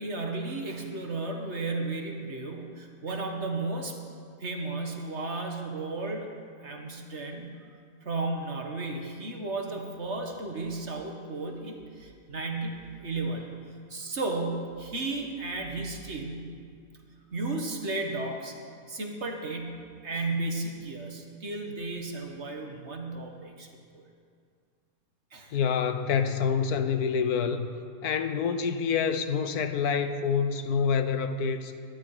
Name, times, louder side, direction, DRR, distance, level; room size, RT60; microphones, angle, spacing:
voice 1, 0.0-4.0 4.4-6.3 6.6-7.6 8.0-13.5 13.9-16.5 17.3-18.6 18.9-23.7 23.9-24.0 25.3-25.6, right 2 dB, 50° right, 2 dB, 1.8 m, -34 dB
voice 2, 25.5-27.7 28.0-31.8, left 6 dB, 80° left, 9 dB, 1.4 m, -27 dB
19.0 x 12.5 x 4.9 m, 2.2 s
omnidirectional pair, 1.6 m